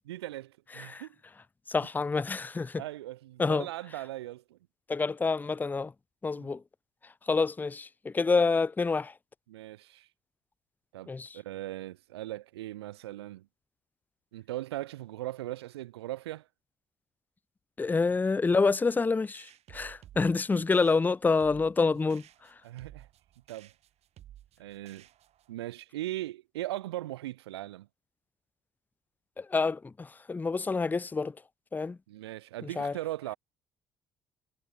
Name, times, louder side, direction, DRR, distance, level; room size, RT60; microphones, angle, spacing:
voice 1, 0.1-1.2 2.8-4.6 6.4-6.5 9.5-10.1 10.9-13.5 14.3-16.5 20.5-20.7 22.6-23.1 23.5-23.7 24.6-25.1 25.5-27.9 32.1-33.3, right 15 dB, 75° right, 0.4 m, -39 dB
voice 2, 1.7-2.8 3.4-3.7 4.9-5.9 6.2-6.6 7.3-9.1 11.1-11.4 17.8-22.2 29.4-31.3 31.7-32.0 32.8-32.9, left 4 dB, 15° left, 0.4 m, -27 dB
sound 1, 19.3-25.5, right 12 dB, 50° right, 1.5 m, -54 dB
figure-of-eight pair, 50°, 14 cm